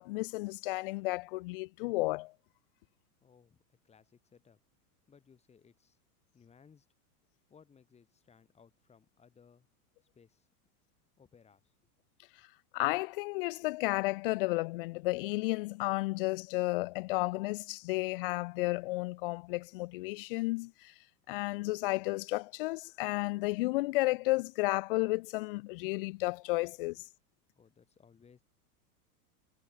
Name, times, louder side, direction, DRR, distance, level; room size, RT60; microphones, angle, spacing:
voice 1, 0.0-2.3 12.7-20.7 21.3-27.0, left 22 dB, 40° left, 0.5 m, -32 dB
voice 2, 3.2-4.6 5.1-6.0 6.3-6.9 7.5-9.7 10.1-10.5 11.2-11.7 27.6-28.4, left 6 dB, 15° left, 3.5 m, -62 dB
supercardioid pair, 155°, 46 cm